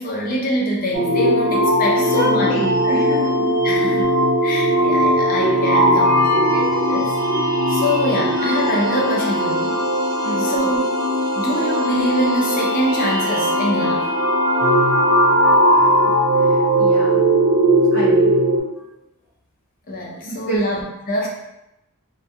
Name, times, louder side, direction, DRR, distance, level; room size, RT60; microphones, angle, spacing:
voice 1, 0.0-3.0 3.6-4.1 4.4-9.8 10.4-11.0 11.3-14.1 19.9-21.3, equal, 40° left, -2 dB, 0.5 m, -25 dB
sound 1, 0.9-18.6, equal, 45° right, 0.4 m, -18 dB
voice 2, 2.0-3.5 3.8-4.0 7.2-7.3 10.2-10.5 15.7-15.8 16.5-17.2 17.9-18.4 20.2-20.7, equal, 55° left, -9 dB, 0.9 m, -27 dB
2.3 x 2.2 x 2.7 m, 0.88 s
head